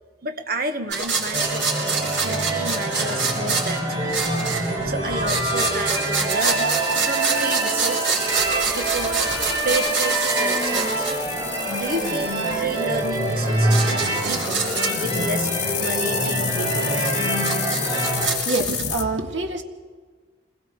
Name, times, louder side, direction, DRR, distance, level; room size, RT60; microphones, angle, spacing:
voice 1, 0.2-4.2 4.8-6.7 7.0-8.3 8.7-11.1 11.8-14.6 15.0-15.5 15.8-17.0, right 2 dB, 55° right, 1.4 m, -31 dB
sound 1, 0.9-4.8 5.1-11.2 12.9-13.0 13.5-15.1 16.8-18.8, right 4 dB, 75° right, 6.5 m, -26 dB
sound 2, 1.3-18.3, right 1 dB, 25° right, 7.1 m, -25 dB
sound 3, 5.9-19.0, left 11 dB, 70° left, 1.3 m, -32 dB
voice 2, 18.3-19.6, right 2 dB, 90° right, 1.9 m, -26 dB
28.5 x 21.0 x 4.8 m
head